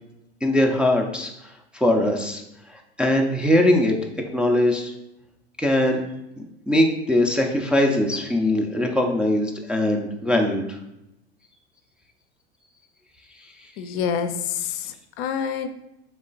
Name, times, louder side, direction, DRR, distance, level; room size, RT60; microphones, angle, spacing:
voice 1, 0.4-1.3 1.7-2.4 3.0-4.1 4.3-4.9 5.6-6.0 6.7-10.7, left 1 dB, 5° right, 0 dB, 0.4 m, -21 dB
voice 2, 13.8-15.7, left 7 dB, 50° left, 8 dB, 0.5 m, -27 dB
3.6 x 3.2 x 3.9 m, 0.85 s
hypercardioid pair, 90°, 32 cm